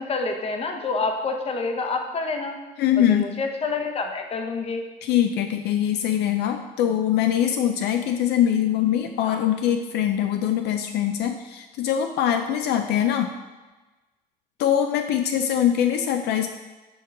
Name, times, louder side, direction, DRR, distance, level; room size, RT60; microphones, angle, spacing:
voice 1, 0.0-2.6 3.0-4.9 9.2-9.4, left 3 dB, 35° left, 4 dB, 0.8 m, -28 dB
voice 2, 2.8-3.3 5.0-13.3 14.6-16.5, left 10 dB, 75° left, 6 dB, 0.4 m, -23 dB
7.0 x 3.0 x 5.9 m, 1.2 s
cardioid pair, 110°, 17 cm